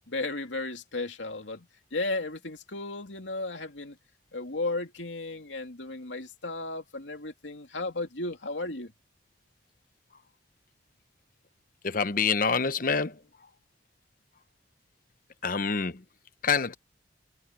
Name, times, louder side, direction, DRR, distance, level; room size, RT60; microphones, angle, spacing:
voice 1, 0.1-4.0 4.3-8.9, left 2 dB, 80° left, 2.6 m, -34 dB
voice 2, 11.8-13.2 15.4-16.0 16.4-16.7, left 5 dB, 45° left, 0.8 m, -26 dB
head